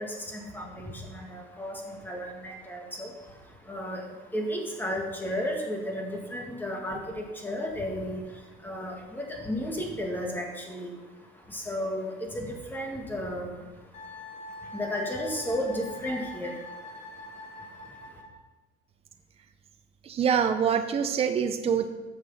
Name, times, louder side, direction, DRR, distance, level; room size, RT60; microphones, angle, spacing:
voice 1, 0.0-18.2, equal, 10° left, 0 dB, 2.0 m, -34 dB
Wind instrument woodwind instrument, 13.9-18.4, left 2 dB, 35° left, 1.9 m, -44 dB
voice 2, 20.0-21.9, right 7 dB, 30° right, 7 dB, 0.7 m, -25 dB
14.0 x 6.5 x 5.7 m, 1.2 s
cardioid pair, 155°, 20 cm